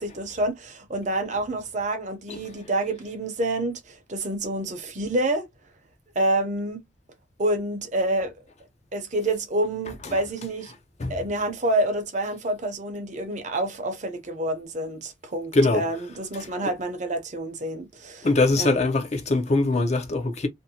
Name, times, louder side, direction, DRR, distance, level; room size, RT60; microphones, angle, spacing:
voice 1, 0.0-5.5 6.1-6.8 7.4-8.3 8.9-10.7 11.1-18.3 18.6-18.7, right 1 dB, 40° right, 0.7 m, -28 dB
voice 2, 18.2-20.5, left 2 dB, 35° left, 0.5 m, -22 dB
2.6 x 2.1 x 2.7 m
head